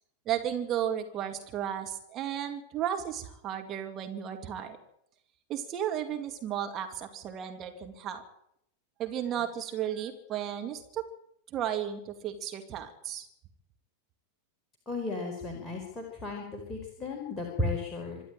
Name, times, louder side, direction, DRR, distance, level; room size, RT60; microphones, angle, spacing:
voice 1, 0.3-4.8 5.5-8.2 9.0-11.1 11.5-13.3, right 10 dB, 30° right, 4 dB, 2.4 m, -34 dB
voice 2, 14.9-18.2, left 2 dB, 15° left, 0 dB, 4.5 m, -34 dB
25.5 x 11.5 x 9.0 m, 0.76 s
figure-of-eight pair, 90°, 0 cm